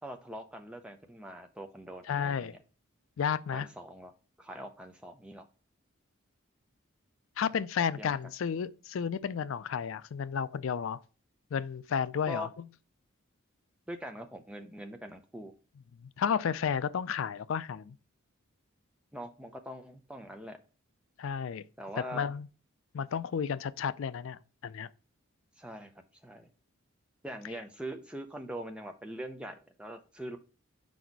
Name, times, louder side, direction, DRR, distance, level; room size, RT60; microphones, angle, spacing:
voice 1, 0.0-2.6 3.5-4.1 4.4-5.5 8.0-8.1 12.3-12.5 13.9-15.5 19.1-20.6 21.8-22.3 25.6-25.9 26.2-26.5 27.2-30.4, equal, 5° right, 0.6 m, -42 dB
voice 2, 2.1-2.6 3.2-3.7 7.4-11.0 11.5-12.5 16.0-18.0 21.2-21.6 22.1-22.5 22.9-24.9, left 7 dB, 65° left, 0.3 m, -32 dB
4.9 x 4.2 x 4.5 m
head